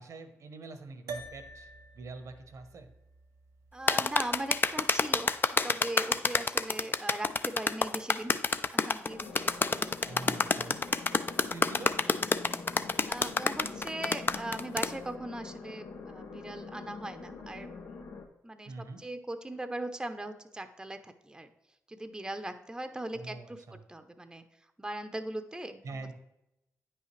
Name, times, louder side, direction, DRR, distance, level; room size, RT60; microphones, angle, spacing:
voice 1, 0.0-1.7 1.9-2.9 10.0-10.8 11.5-11.9 18.7-19.1 23.1-23.8 25.8-26.1, right 3 dB, 65° right, 8 dB, 1.0 m, -44 dB
sound 1, 1.1-5.7, right 4 dB, 90° right, 0.7 m, -48 dB
voice 2, 3.7-5.3 5.6-8.3 8.7-9.9 13.1-18.0 18.4-21.5 21.9-24.4 24.8-26.1, right 1 dB, 15° right, 8 dB, 0.7 m, -39 dB
sound 2, 3.9-14.9, left 4 dB, 40° left, 0.4 m, -28 dB
sound 3, 9.1-18.3, left 4 dB, 80° left, 0.8 m, -45 dB
9.1 x 5.6 x 3.2 m, 0.89 s
supercardioid pair, 55°, 6 cm